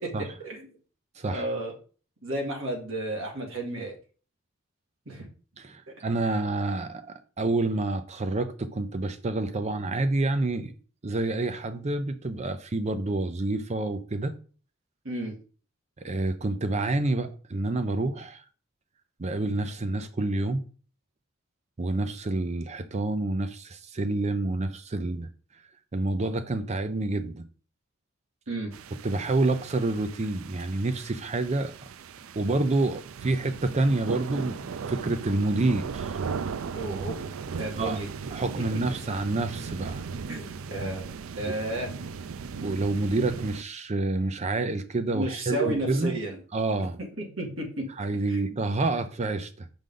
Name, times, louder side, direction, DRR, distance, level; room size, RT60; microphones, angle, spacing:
voice 1, 1.3-1.7 2.2-3.9 5.1-5.2 15.0-15.3 28.5-28.7 36.7-37.2 37.5-38.1 38.5-38.7 40.3-41.1 41.4-41.9 45.1-46.4 47.2-47.8 48.3-48.6, right 1 dB, 70° right, 2.2 m, -32 dB
voice 2, 5.6-7.0 7.4-10.7 11.0-14.3 16.0-18.4 19.2-20.6 21.8-25.3 25.9-27.4 29.0-31.7 32.4-36.2 37.8-38.0 38.3-40.0 41.5-41.6 42.6-46.2 46.5-47.0 48.0-49.7, right 2 dB, 35° right, 0.5 m, -28 dB
sound 1, 28.7-43.6, right 5 dB, 85° right, 0.4 m, -38 dB
6.3 x 5.2 x 3.8 m
head